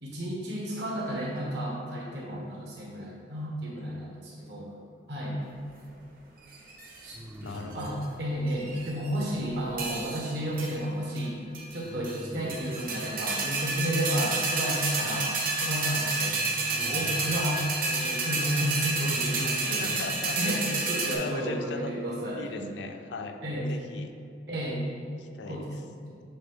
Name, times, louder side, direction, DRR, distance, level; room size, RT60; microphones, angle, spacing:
voice 1, 0.0-4.7 5.1-5.4 7.0-11.4 11.7-15.3 15.6-16.4 16.7-20.0 20.3-22.7 23.4-23.7 24.5-24.8 25.4-26.2, equal, 70° right, -4 dB, 1.5 m, -32 dB
sound 1, 4.4-5.1 7.1-8.1 11.8-12.9 16.2-17.5, right 1 dB, 15° right, 0.3 m, -45 dB
sound 2, 6.5-7.0 7.5-8.0 8.5-9.2 9.8-10.3 10.6-10.7 11.2-11.3 11.5-12.2 12.5-21.2, right 3 dB, 50° right, 0.9 m, -30 dB
voice 2, 7.4-8.0 19.8-21.9 22.4-23.4 23.7-24.1 25.2-25.8, left 3 dB, 80° left, 6 dB, 0.5 m, -39 dB
7.5 x 3.5 x 3.6 m, 2.4 s
head